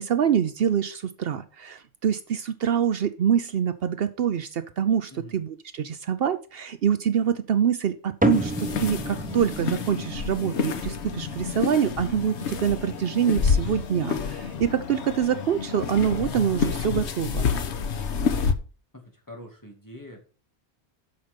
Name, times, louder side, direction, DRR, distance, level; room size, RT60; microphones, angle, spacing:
voice 1, 0.0-17.4, right 8 dB, 65° right, 11 dB, 0.8 m, -25 dB
sound 1, 8.2-14.9, right 1 dB, 10° right, 0.6 m, -33 dB
sound 2, 8.3-18.5, left 5 dB, 90° left, 1.2 m, -29 dB
voice 2, 18.9-20.2, left 1 dB, 15° left, 1 dB, 2.2 m, -44 dB
8.1 x 6.7 x 5.1 m, 0.36 s
omnidirectional pair, 1.1 m